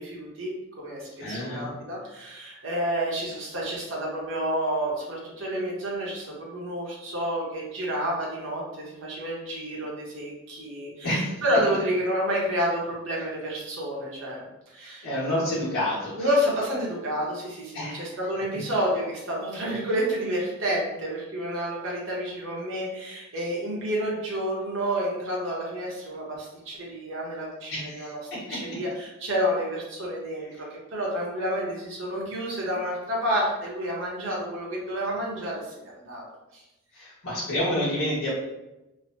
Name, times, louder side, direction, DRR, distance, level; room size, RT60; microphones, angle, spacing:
voice 1, 0.0-15.1 16.2-28.1 28.5-36.2 36.5-36.6, equal, 60° right, -4 dB, 0.9 m, -29 dB
voice 2, 1.2-1.7 11.0-11.3 15.0-16.3 17.7-18.1 23.4-23.5 27.7-28.1 28.5-28.6 30.4-30.5 36.9-38.3, left 1 dB, 85° left, -8 dB, 1.1 m, -29 dB
3.1 x 2.1 x 2.7 m, 0.97 s
head